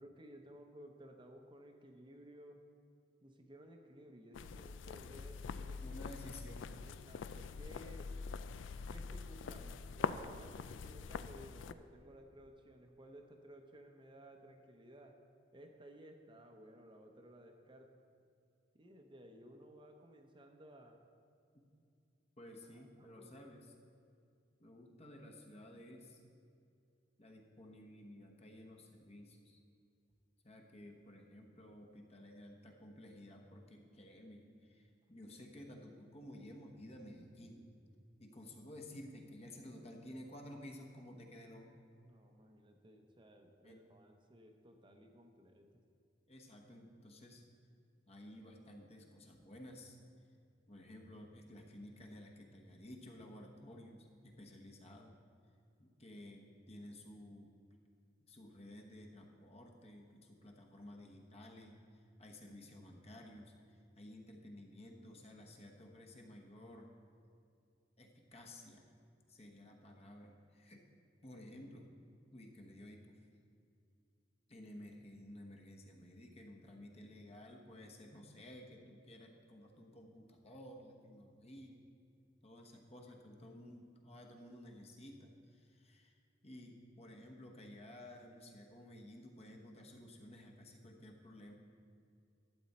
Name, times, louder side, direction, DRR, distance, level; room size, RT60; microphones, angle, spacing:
voice 1, 0.0-2.6 3.2-5.8 6.8-8.1 8.9-15.2 15.5-17.9 18.7-21.0 22.7-23.5 42.1-45.8, equal, 25° right, 4 dB, 0.7 m, -57 dB
sound 1, 4.3-11.7, left 5 dB, 85° left, 0.4 m, -44 dB
voice 2, 5.6-6.7 21.5-21.6 22.4-23.7 24.6-26.2 27.2-29.6 30.4-37.7 38.2-41.8 43.6-43.8 46.3-47.4 48.1-50.0 50.7-55.2 55.8-57.5 58.3-66.9 68.0-68.8 69.3-70.8 71.2-71.9 72.3-73.2 74.5-81.8 82.4-91.5, left 1 dB, 35° left, 1 dB, 1.1 m, -54 dB
12.5 x 7.8 x 4.2 m, 2.5 s
head